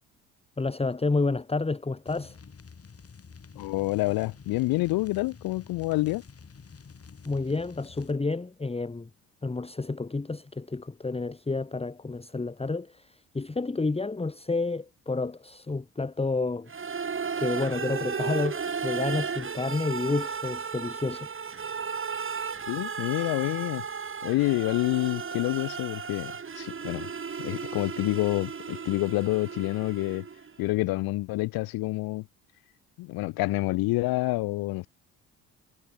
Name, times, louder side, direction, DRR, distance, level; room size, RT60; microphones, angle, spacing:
voice 1, 0.6-2.4 7.2-9.1 9.4-16.7 17.4-21.3, left 3 dB, 15° left, 1.4 m, -30 dB
sound 1, 2.1-8.2, left 5 dB, 35° left, 4.7 m, -49 dB
voice 2, 3.6-6.2 22.7-23.9 24.2-27.1 27.4-30.3 30.6-32.3 33.0-34.9, left 20 dB, 65° left, 0.6 m, -28 dB
sound 2, 16.7-30.5, right 6 dB, 30° right, 1.7 m, -34 dB
hypercardioid pair, 55°, 40 cm